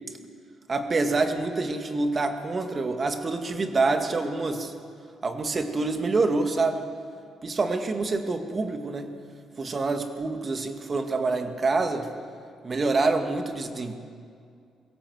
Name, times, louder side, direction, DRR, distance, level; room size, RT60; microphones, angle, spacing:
voice 1, 0.7-4.7 5.2-6.9 7.4-9.1 9.6-12.1 12.6-14.0, right 3 dB, 35° right, 6 dB, 2.1 m, -26 dB
22.5 x 17.0 x 8.0 m, 2.3 s
cardioid pair, 90°, 0 cm